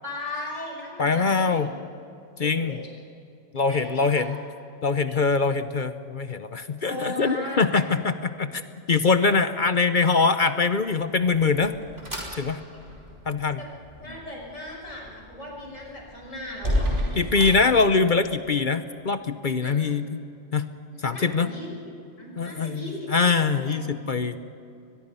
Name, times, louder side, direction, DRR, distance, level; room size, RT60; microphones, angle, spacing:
voice 1, 0.0-1.7 2.4-2.9 3.7-4.3 5.1-5.2 6.8-7.8 12.7-12.8 13.6-13.7 14.0-17.5 19.6-19.8 20.9-21.9 22.2-23.8 24.3-24.4, left 1 dB, 85° left, -1 dB, 6.1 m, -37 dB
voice 2, 1.0-1.7 2.4-2.8 3.5-4.4 4.8-8.6 8.9-11.7 12.3-12.6 13.3-13.6 17.2-20.1 20.5-20.7 21.0-21.5 22.4-24.4, left 4 dB, 45° left, 10 dB, 0.8 m, -23 dB
sound 1, 11.1-18.4, equal, 65° right, 5.3 m, -33 dB
22.5 x 21.5 x 5.5 m, 2.6 s
omnidirectional pair, 1.3 m